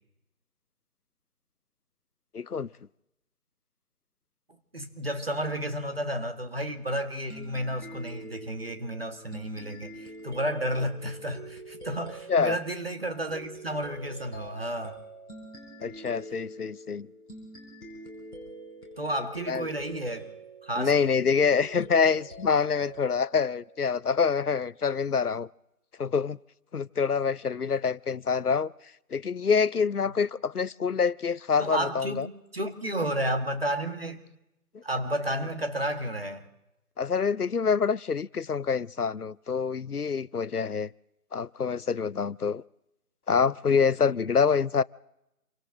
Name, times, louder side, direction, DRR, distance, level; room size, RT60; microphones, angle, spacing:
voice 1, 2.3-2.7 12.3-12.6 15.8-17.1 19.5-19.6 20.8-25.5 26.0-26.4 26.7-28.7 29.1-32.3 34.7-34.8 37.0-40.9 41.3-42.6 43.3-44.8, left 6 dB, 75° left, 0.7 m, -26 dB
voice 2, 4.7-15.0 19.0-20.3 20.6-20.9 30.0-30.1 31.6-34.2 34.8-36.5, right 1 dB, 40° right, 2.0 m, -32 dB
sound 1, 7.3-24.5, right 1 dB, 5° left, 2.7 m, -45 dB
28.0 x 24.5 x 3.9 m
figure-of-eight pair, 170°, 46 cm